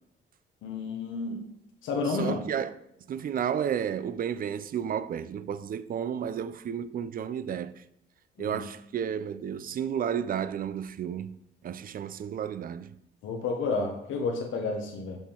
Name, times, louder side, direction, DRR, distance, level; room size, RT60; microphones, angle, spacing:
voice 1, 0.6-1.4 1.8-2.4 8.4-8.6 13.2-15.2, left 3 dB, 80° left, 1.0 m, -30 dB
voice 2, 2.1-2.8 3.1-7.8 8.4-11.4 11.6-12.9, right 8 dB, 45° right, 0.4 m, -32 dB
7.0 x 3.6 x 4.4 m
cardioid pair, 90°, 20 cm